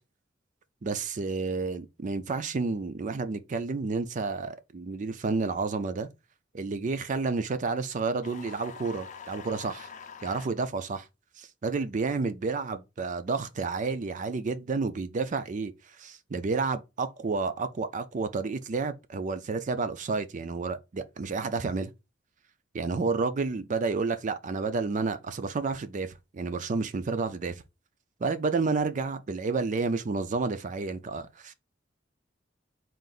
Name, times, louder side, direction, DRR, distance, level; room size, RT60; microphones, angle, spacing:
voice 1, 0.8-6.1 6.5-9.9 10.2-11.1 11.4-15.7 16.0-21.9 22.7-27.6 28.2-31.5, right 4 dB, 45° right, 0.4 m, -30 dB
sound 1, 8.2-10.5, left 6 dB, 40° left, 0.5 m, -45 dB
3.8 x 2.5 x 3.8 m
head